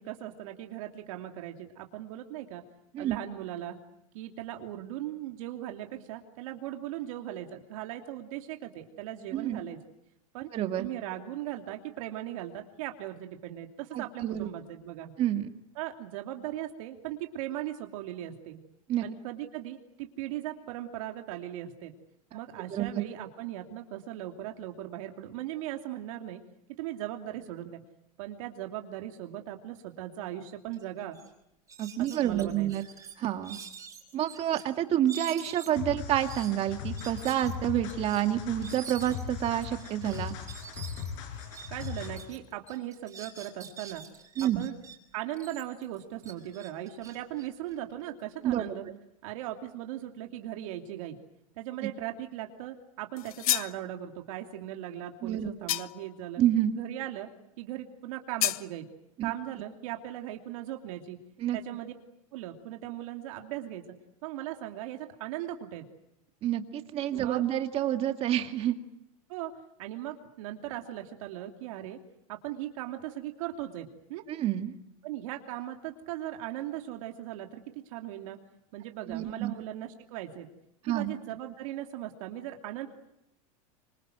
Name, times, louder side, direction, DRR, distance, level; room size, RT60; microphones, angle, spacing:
voice 1, 0.0-2.6 3.0-3.8 4.1-9.8 10.3-10.5 10.8-15.1 15.8-18.6 19.0-21.9 22.3-26.4 26.8-27.8 28.2-31.2 32.0-32.7 41.7-44.1 44.6-44.7 45.1-48.9 49.2-51.2 51.6-56.4 56.7-57.3 57.6-58.9 59.2-61.2 61.5-61.9 62.3-63.8 64.2-65.9 67.1-67.4 69.3-69.5 69.8-72.0 72.3-74.2 75.0-78.4 78.7-80.5 80.9-82.9, right 13 dB, 65° right, 4 dB, 2.8 m, -38 dB
voice 2, 10.5-10.9 13.9-14.5 15.2-15.5 18.9-19.0 22.7-23.0 31.8-32.8 33.2-33.6 34.1-40.3 44.4-44.7 48.4-48.7 55.2-55.5 56.4-56.8 59.2-59.3 61.4-61.6 66.4-68.8 74.3-74.8 79.1-79.5 80.8-81.1, right 11 dB, 35° right, 7 dB, 2.1 m, -28 dB
sound 1, 30.7-30.8 31.1-31.3 31.7-34.6 35.1-42.4 42.7-45.0 45.3-48.2, right 6 dB, 15° right, 5.4 m, -47 dB
sound 2, 35.8-42.4, left 8 dB, 55° left, 6.2 m, -39 dB
sound 3, 53.2-53.8 55.7-56.1 58.4-58.7, left 15 dB, 80° left, 0.9 m, -29 dB
26.5 x 26.0 x 7.9 m, 0.84 s
supercardioid pair, 145°, 18 cm